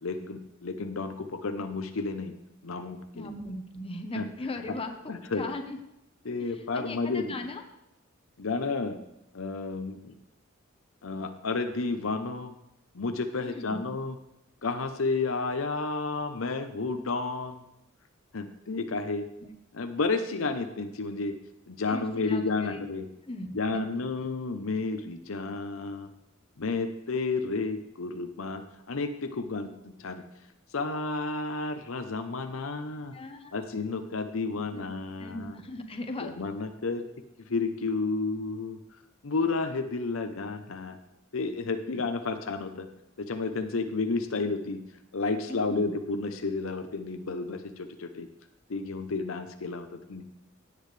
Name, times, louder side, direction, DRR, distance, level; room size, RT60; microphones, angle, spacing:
voice 1, 0.0-2.3 2.6-3.3 4.1-4.3 5.1-5.5 6.2-7.3 8.4-9.0 9.3-10.1 11.0-12.5 12.9-14.2 14.6-17.6 18.3-19.3 19.7-21.4 21.7-23.1 23.5-26.1 26.6-28.6 28.9-30.2 30.7-33.1 33.5-35.6 36.2-37.1 37.5-38.8 39.2-41.0 41.3-42.9 43.2-44.8 45.1-48.3 48.7-50.2, left 3 dB, 75° left, 7 dB, 0.7 m, -31 dB
voice 2, 3.1-5.8 6.4-7.6 13.4-13.9 19.4-19.5 21.9-22.8 23.2-24.0 33.1-33.5 34.7-34.8 35.2-36.3 45.5-45.9, left 2 dB, 30° left, 5 dB, 1.0 m, -38 dB
16.5 x 8.6 x 3.3 m, 0.85 s
head